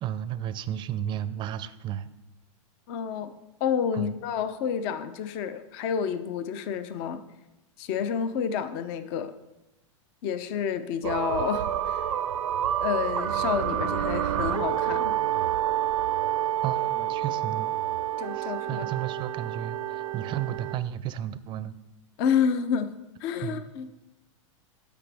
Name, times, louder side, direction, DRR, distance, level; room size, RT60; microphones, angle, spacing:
voice 1, 0.0-2.1 3.9-4.1 16.6-17.7 18.3-21.8 23.4-23.6, right 11 dB, 30° right, 14 dB, 0.5 m, -33 dB
voice 2, 2.9-3.3 3.6-7.2 7.8-9.3 10.2-12.0 12.8-15.1 18.2-18.9 22.2-22.9 23.2-23.9, left 7 dB, 50° left, 11 dB, 0.6 m, -29 dB
sound 1, 11.0-20.7, right 11 dB, 85° right, 0.5 m, -28 dB
12.5 x 5.1 x 3.4 m, 0.97 s
hypercardioid pair, 125°, 17 cm